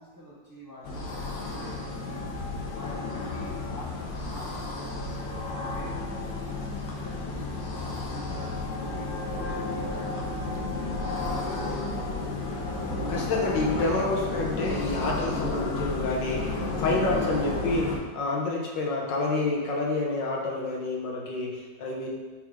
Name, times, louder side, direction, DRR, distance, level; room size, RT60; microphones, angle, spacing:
voice 1, 0.0-2.3 2.7-5.9 6.4-8.5 8.8-12.1, equal, 10° right, -9 dB, 1.6 m, -46 dB
sound 1, 0.8-18.0, left 2 dB, 70° left, 1.5 m, -32 dB
voice 2, 13.1-22.1, left 2 dB, 85° left, -2 dB, 1.8 m, -28 dB
7.8 x 3.7 x 3.6 m, 1.3 s
omnidirectional pair, 1.9 m